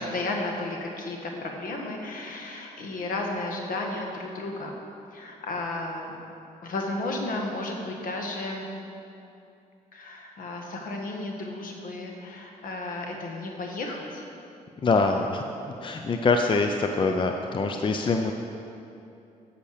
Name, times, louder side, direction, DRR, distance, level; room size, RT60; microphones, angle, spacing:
voice 1, 0.0-4.7 5.1-6.2 6.6-8.7 9.9-14.2, left 2 dB, 70° left, 1 dB, 1.5 m, -33 dB
voice 2, 14.8-15.4 15.8-18.3, left 3 dB, 35° left, 4 dB, 0.6 m, -24 dB
8.4 x 6.7 x 6.6 m, 2.7 s
cardioid pair, 85°, 15 cm